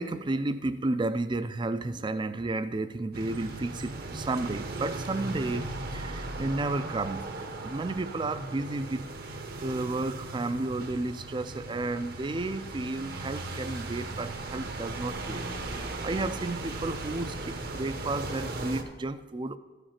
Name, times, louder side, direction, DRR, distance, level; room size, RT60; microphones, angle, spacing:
voice 1, 0.0-7.2 7.6-9.1 9.6-19.6, right 2 dB, 25° right, 12 dB, 0.4 m, -32 dB
sound 1, 3.1-18.8, right 2 dB, 55° right, 0.9 m, -37 dB
13.5 x 5.0 x 5.7 m, 1.3 s
head